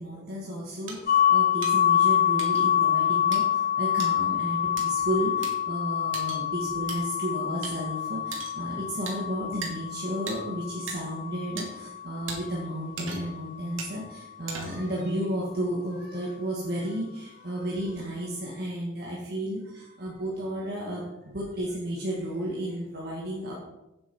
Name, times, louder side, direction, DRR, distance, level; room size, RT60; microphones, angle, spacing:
voice 1, 0.0-23.5, equal, 50° right, -4 dB, 2.0 m, -33 dB
sound 1, 0.9-1.0 1.6-1.7 2.4-2.6 3.3-3.4 4.0-4.1 4.8-4.9 5.4-5.5 6.1-6.4 6.9-7.0 7.6-7.7 8.3-8.6 9.1-9.2 9.6-9.7 10.3-10.4 10.9-11.0 11.6-11.7 12.3-12.4 13.0-13.4 13.8-13.9 14.5-14.9, right 4 dB, 85° right, 2.6 m, -37 dB
sound 2, 1.1-12.8, left 10 dB, 45° left, 0.4 m, -26 dB
8.9 x 8.0 x 5.4 m, 0.96 s
head